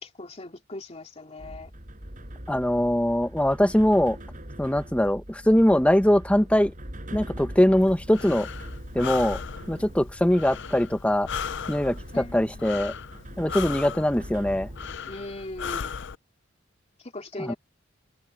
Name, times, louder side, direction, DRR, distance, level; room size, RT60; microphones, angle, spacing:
voice 1, 0.0-1.7 12.1-12.9 15.1-15.9 17.0-17.6, left 2 dB, 30° left, 2.7 m, -39 dB
sound 1, 1.4-15.0, equal, 40° right, 6.1 m, -42 dB
voice 2, 2.5-4.2 4.6-6.7 7.1-8.5 8.9-9.4 9.7-11.3 11.7-12.9 13.4-14.7 17.5-17.6, left 1 dB, 5° left, 0.9 m, -22 dB
Breathing, 7.8-16.1, left 7 dB, 60° left, 0.6 m, -37 dB
open air
head